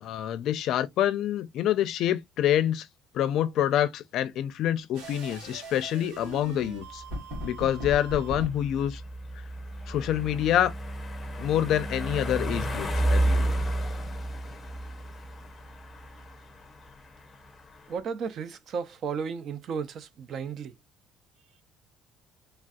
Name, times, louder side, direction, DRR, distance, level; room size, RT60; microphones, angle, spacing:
voice 1, 0.0-2.9 3.1-7.0 7.4-9.0 9.9-10.7 11.4-13.5, left 11 dB, 60° left, 0.4 m, -27 dB
sound 1, 4.9-8.5, right 1 dB, 85° right, 1.4 m, -38 dB
sound 2, 6.3-18.0, right 1 dB, 20° left, 0.7 m, -32 dB
voice 2, 17.9-20.7, right 6 dB, 45° right, 0.4 m, -34 dB
3.3 x 2.5 x 2.3 m
cardioid pair, 135°, 0 cm